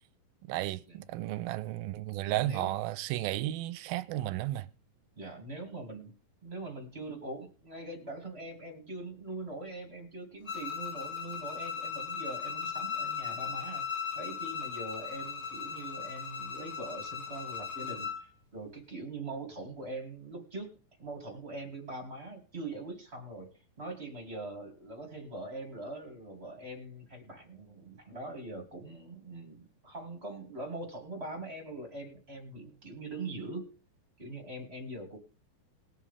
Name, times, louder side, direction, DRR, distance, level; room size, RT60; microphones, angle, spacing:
voice 1, 0.5-4.7, right 15 dB, 80° right, 2.4 m, -33 dB
voice 2, 2.3-2.8 5.2-6.1 6.4-13.8 14.1-20.7 21.0-33.7 34.2-35.2, right 2 dB, 20° right, 2.3 m, -42 dB
Bowed string instrument, 10.4-18.2, left 7 dB, 20° left, 1.8 m, -38 dB
21.5 x 7.3 x 3.6 m
omnidirectional pair, 4.4 m